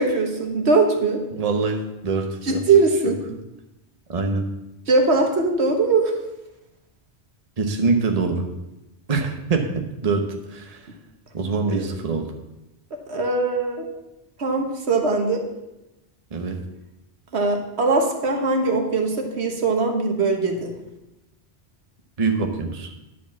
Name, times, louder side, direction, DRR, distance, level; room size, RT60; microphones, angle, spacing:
voice 1, 0.0-1.2 2.4-3.2 4.9-6.1 11.7-11.8 13.1-13.9 14.4-15.4 17.3-20.7, right 3 dB, 80° right, 3 dB, 1.5 m, -21 dB
voice 2, 1.3-2.6 4.1-4.5 7.6-8.5 9.1-10.8 11.3-12.3 16.3-16.6 22.2-22.9, right 4 dB, 35° right, 3 dB, 1.0 m, -24 dB
10.5 x 5.0 x 7.1 m, 0.95 s
omnidirectional pair, 1.1 m